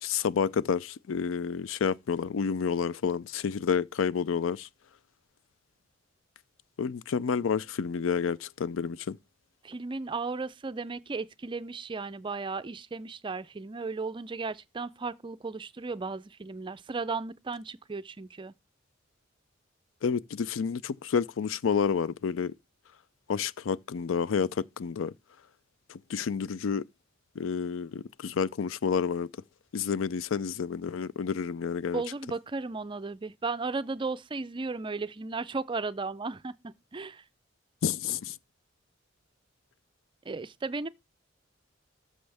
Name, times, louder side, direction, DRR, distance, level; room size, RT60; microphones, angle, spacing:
voice 1, 0.0-4.7 6.8-9.2 20.0-22.5 23.3-25.1 25.9-26.8 27.4-29.3 29.7-32.0 37.8-38.4, left 6 dB, 85° left, 0.4 m, -29 dB
voice 2, 9.6-18.5 31.9-37.2 40.3-40.9, right 4 dB, 25° right, 0.4 m, -35 dB
13.0 x 6.3 x 3.4 m
head